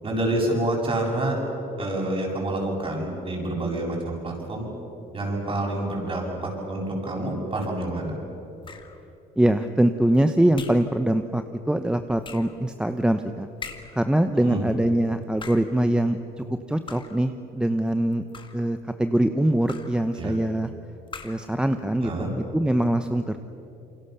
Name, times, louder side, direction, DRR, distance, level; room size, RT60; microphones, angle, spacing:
voice 1, 0.0-1.4 1.8-4.7 5.1-8.1 14.4-14.7 20.2-20.3 22.0-22.3, right 1 dB, 35° right, -1 dB, 7.9 m, -27 dB
sound 1, 8.6-9.1 10.6-11.0 12.2-12.6 13.6-14.1 15.2-15.8 16.9-17.3 18.1-18.7 19.7-20.1 21.1-21.5, left 5 dB, 30° left, 2.0 m, -41 dB
voice 2, 9.4-13.5 13.9-18.2 18.5-20.7 21.2-23.4, right 1 dB, 5° right, 8 dB, 0.9 m, -23 dB
28.5 x 24.0 x 6.9 m, 2.9 s
cardioid pair, 110°, 17 cm